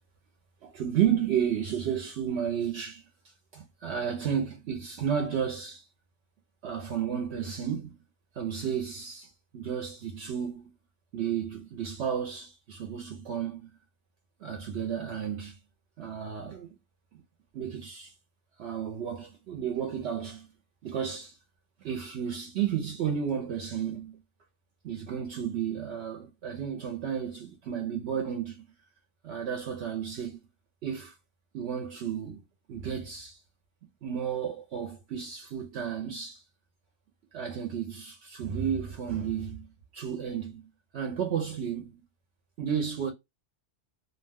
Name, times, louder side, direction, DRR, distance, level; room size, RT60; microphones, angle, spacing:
voice 1, 0.6-3.1 3.5-5.8 6.6-7.9 8.4-10.7 11.1-13.7 14.4-15.6 16.0-16.8 17.1-17.2 17.5-18.1 18.6-20.5 20.8-21.4 21.8-24.2 24.8-28.6 29.2-30.4 30.8-31.1 31.5-32.4 32.7-33.4 34.0-36.4 37.3-40.7 40.9-41.9 42.6-43.1, right 8 dB, 70° right, 0.8 m, -32 dB
2.5 x 2.1 x 3.3 m
omnidirectional pair, 1.2 m